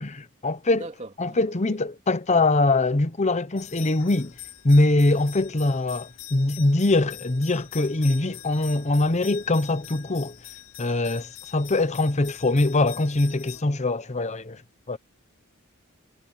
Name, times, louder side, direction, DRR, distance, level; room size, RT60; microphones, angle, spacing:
voice 1, 0.0-0.9 1.2-4.3 4.6-10.3 10.8-14.6 14.9-15.0, left 2 dB, 35° left, 0.9 m, -23 dB
voice 2, 0.7-1.8, right 2 dB, 35° right, 3.2 m, -41 dB
sound 1, 3.6-13.6, left 13 dB, 60° left, 5.2 m, -44 dB
head